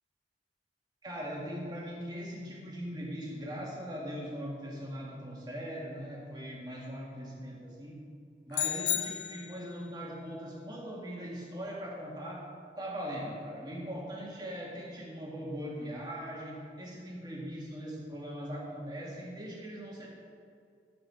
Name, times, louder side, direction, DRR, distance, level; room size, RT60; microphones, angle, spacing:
voice 1, 1.0-8.0 8.5-12.5 12.8-20.1, equal, 25° right, -3 dB, 1.9 m, -40 dB
sound 1, 8.5-9.9, left 11 dB, 85° left, 0.9 m, -33 dB
12.0 x 7.6 x 4.8 m, 2.4 s
head